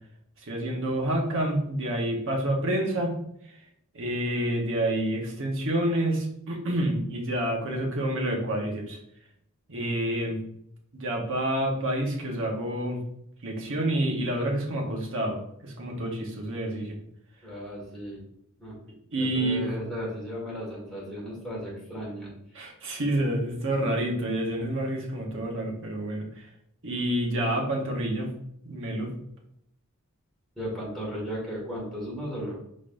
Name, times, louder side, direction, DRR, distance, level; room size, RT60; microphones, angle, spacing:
voice 1, 0.4-3.2 3.9-9.0 9.7-10.4 10.9-13.0 13.4-17.0 19.1-19.7 22.5-26.5 26.8-28.3 28.6-29.1, right 1 dB, 60° right, 0 dB, 1.1 m, -28 dB
voice 2, 17.4-18.2 18.6-18.8 19.2-22.3 30.6-32.6, equal, ahead, -6 dB, 1.8 m, -35 dB
4.9 x 3.9 x 2.6 m, 0.74 s
head